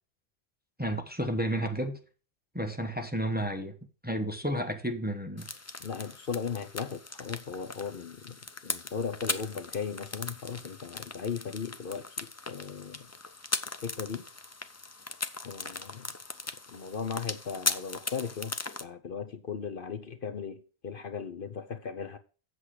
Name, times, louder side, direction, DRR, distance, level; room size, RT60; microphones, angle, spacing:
voice 1, 0.8-2.0 2.5-3.7 4.0-5.5, right 1 dB, 10° right, 1.1 m, -31 dB
sound 1, 5.4-18.8, left 3 dB, 25° left, 0.3 m, -38 dB
voice 2, 5.8-8.4 8.6-13.1 13.8-14.3 15.4-16.1 16.7-18.5 18.8-22.2, left 6 dB, 55° left, 1.0 m, -37 dB
8.0 x 7.6 x 4.9 m
omnidirectional pair, 1.1 m